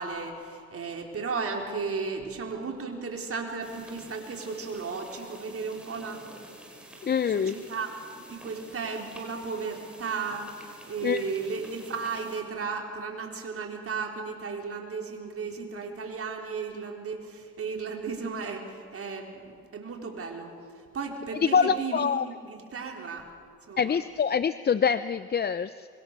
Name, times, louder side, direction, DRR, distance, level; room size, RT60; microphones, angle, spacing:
voice 1, 0.0-6.2 7.3-7.9 8.3-10.5 10.9-20.5 20.9-22.2 22.4-23.2 23.7-24.0, right 5 dB, 50° right, 2 dB, 4.4 m, -34 dB
sound 1, 3.6-12.4, right 1 dB, 5° right, 5.1 m, -49 dB
voice 2, 7.0-7.6 11.0-11.2 21.4-22.3 23.8-25.9, left 6 dB, 35° left, 13 dB, 0.6 m, -25 dB
25.5 x 22.5 x 6.9 m, 2.3 s
cardioid pair, 90°, 30 cm